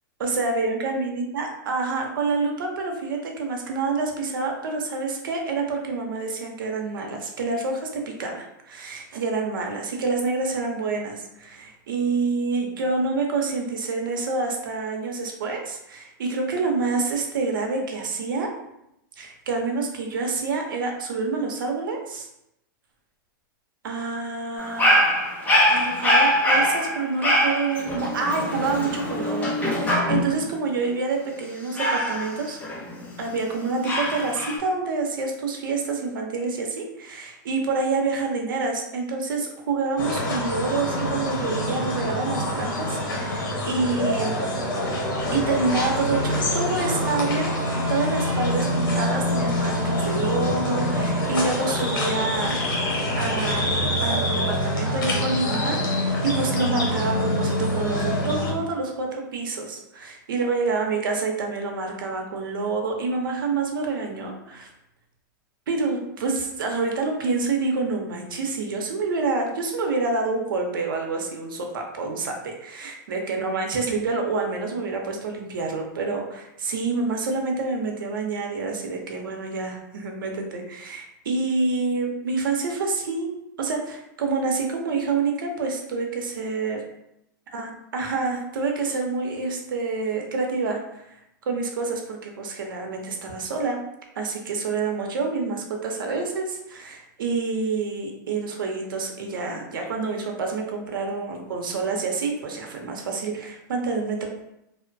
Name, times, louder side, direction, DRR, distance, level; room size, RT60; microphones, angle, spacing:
voice 1, 0.2-18.5 19.2-22.3 23.8-24.9 25.7-32.6 33.2-44.5 45.3-47.5 47.9-53.7 54.0-64.7 65.7-83.3 83.6-86.8 87.5-91.2 91.4-93.8 94.2-104.3, right 4 dB, 85° right, 2 dB, 0.6 m, -27 dB
Dog, 24.6-30.4 31.7-33.2 33.8-34.6, equal, 15° left, 0.6 m, -23 dB
sound 1, 40.0-58.5, left 1 dB, 75° left, 0.8 m, -25 dB
2.8 x 2.1 x 2.5 m, 0.83 s
supercardioid pair, 140°, 11 cm